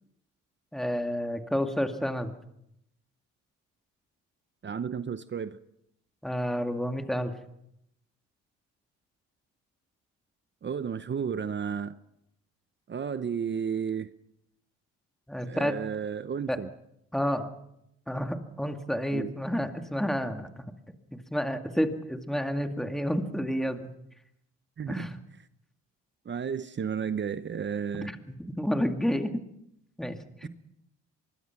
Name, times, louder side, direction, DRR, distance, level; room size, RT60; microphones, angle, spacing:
voice 1, 0.7-2.3 6.2-7.3 15.3-15.8 16.5-16.6 17.1-17.5 18.1-20.6 21.1-23.9 24.9-25.2 27.9-29.4 30.0-30.5, equal, ahead, 2.1 m, -30 dB
voice 2, 4.6-5.6 10.6-11.9 12.9-14.1 15.4-16.7 19.1-19.3 24.8-25.1 26.2-28.1 30.4-30.5, right 7 dB, 40° right, 0.9 m, -32 dB
24.5 x 21.5 x 6.0 m
cardioid pair, 90°, 30 cm